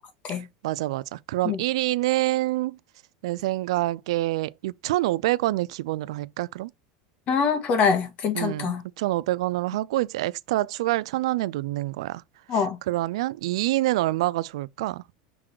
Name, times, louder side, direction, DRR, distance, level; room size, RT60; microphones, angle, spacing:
voice 1, 0.3-2.8 3.2-6.7 8.3-12.2 12.5-15.0, right 17 dB, 75° right, 0.4 m, -26 dB
voice 2, 7.3-8.8 12.5-12.8, left 6 dB, 45° left, 1.9 m, -24 dB
6.0 x 3.8 x 4.5 m
supercardioid pair, 110°, 3 cm